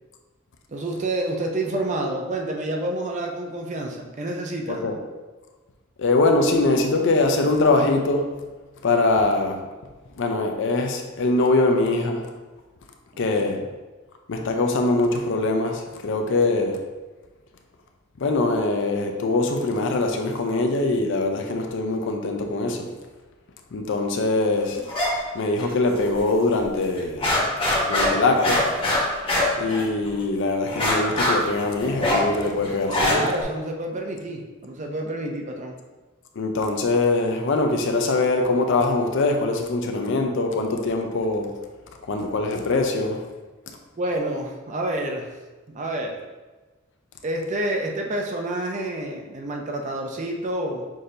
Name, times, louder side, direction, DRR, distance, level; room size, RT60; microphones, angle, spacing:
voice 1, 0.7-4.9 13.3-13.7 24.7-24.8 33.0-35.8 44.0-45.3 45.7-46.2 47.2-50.9, right 1 dB, 35° right, 2 dB, 0.5 m, -28 dB
voice 2, 6.0-8.3 8.8-9.6 10.2-12.3 13.2-13.6 14.3-16.8 18.2-22.9 23.7-24.8 25.3-27.4 27.9-28.7 29.6-33.3 36.4-41.6 42.1-43.2, left 2 dB, 60° left, 4 dB, 0.5 m, -22 dB
sound 1, 24.9-25.1 25.4-26.2 26.5-26.6 27.0-30.2 30.7-33.4, left 1 dB, 25° left, 0.9 m, -23 dB
6.1 x 2.7 x 2.6 m, 1.2 s
head